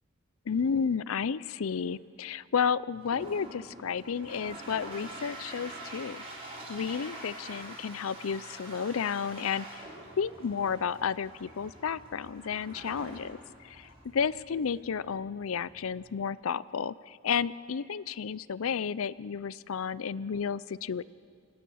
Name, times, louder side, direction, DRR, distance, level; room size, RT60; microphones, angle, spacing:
voice 1, 0.5-6.2 6.7-9.8 10.2-13.4 13.6-21.0, left 6 dB, 75° left, 19 dB, 0.5 m, -32 dB
Toilet flush, 2.9-16.1, right 1 dB, 30° right, 4.9 m, -46 dB
25.5 x 18.5 x 6.4 m, 2.2 s
head